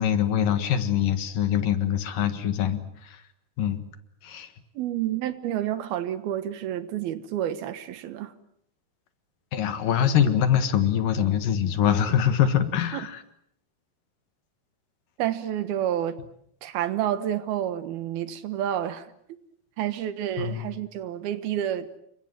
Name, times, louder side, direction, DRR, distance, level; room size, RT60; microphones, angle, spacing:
voice 1, 0.0-3.2 3.6-3.8 4.2-4.5 9.5-13.2 20.4-20.7, left 9 dB, 65° left, 3.1 m, -24 dB
voice 2, 4.8-8.3 12.9-13.0 15.2-16.2 16.6-19.1 19.8-22.0, right 11 dB, 80° right, 3.2 m, -29 dB
29.0 x 24.0 x 7.7 m
omnidirectional pair, 4.4 m